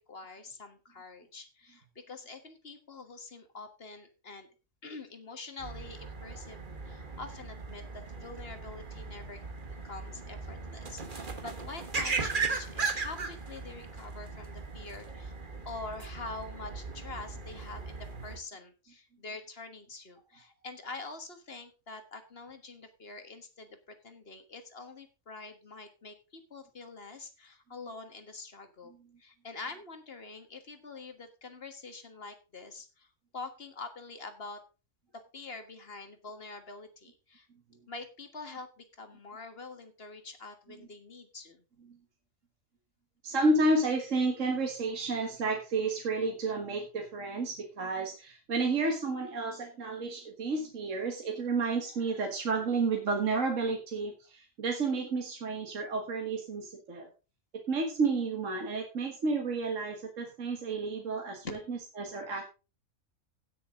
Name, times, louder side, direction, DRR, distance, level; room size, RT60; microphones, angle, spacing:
voice 1, 0.0-4.5 4.8-9.4 9.8-15.3 15.7-28.9 29.2-33.1 33.3-34.6 35.3-37.5 37.9-41.6 61.4-61.6, left 3 dB, 45° left, 7 dB, 1.7 m, -45 dB
sound 1, 5.6-18.4, right 4 dB, 35° right, 1.4 m, -38 dB
voice 2, 43.2-57.1 57.7-62.5, right 3 dB, 60° right, 2 dB, 1.9 m, -31 dB
17.0 x 6.3 x 3.7 m, 0.32 s
omnidirectional pair, 1.5 m